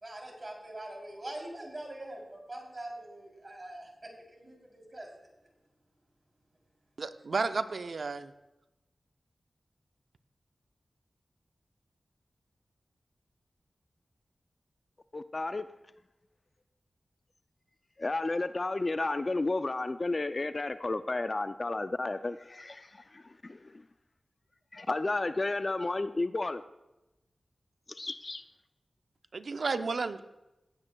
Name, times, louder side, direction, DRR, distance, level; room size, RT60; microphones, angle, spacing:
voice 1, 0.0-3.9 4.3-5.1, right 1 dB, 40° right, 0 dB, 3.2 m, -43 dB
voice 2, 7.0-8.3 29.3-30.2, right 4 dB, 75° right, 11 dB, 0.5 m, -32 dB
voice 3, 15.1-15.7 18.0-23.8 24.7-26.6 27.9-28.4, left 2 dB, 45° left, 11 dB, 0.3 m, -32 dB
17.0 x 8.9 x 2.3 m, 0.98 s
cardioid pair, 45°, 0 cm